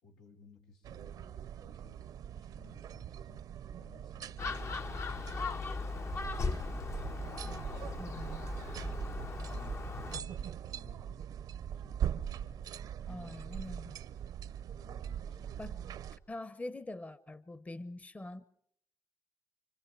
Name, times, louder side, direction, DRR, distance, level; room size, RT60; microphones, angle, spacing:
voice 1, 0.0-2.0 2.3-5.1 9.5-12.7 13.0-13.4 14.3-15.7, left 4 dB, 90° left, 0 dB, 4.5 m, -61 dB
sound 1, 0.8-16.2, right 9 dB, 75° right, 0.9 m, -42 dB
Gull seagull, 4.4-10.2, left 4 dB, 45° left, 1.1 m, -38 dB
voice 2, 8.0-8.5 13.1-14.0 15.6-15.8 16.3-18.4, left 2 dB, 20° left, 15 dB, 1.0 m, -44 dB
29.5 x 25.0 x 4.9 m, 0.65 s
cardioid pair, 75°, 7 cm